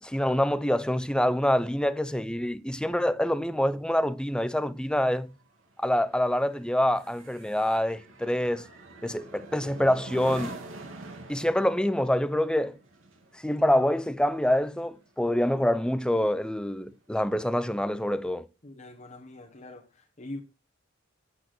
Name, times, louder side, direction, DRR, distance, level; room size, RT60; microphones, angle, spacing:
voice 1, 0.0-5.3 5.8-8.7 9.0-10.6 11.3-12.8 13.3-18.5, left 1 dB, 5° left, 0.7 m, -26 dB
sound 1, 3.8-15.5 15.9-16.2, right 2 dB, 90° right, 3.4 m, -46 dB
voice 2, 18.6-20.4, left 1 dB, 35° left, 1.4 m, -43 dB
9.1 x 8.5 x 6.1 m
head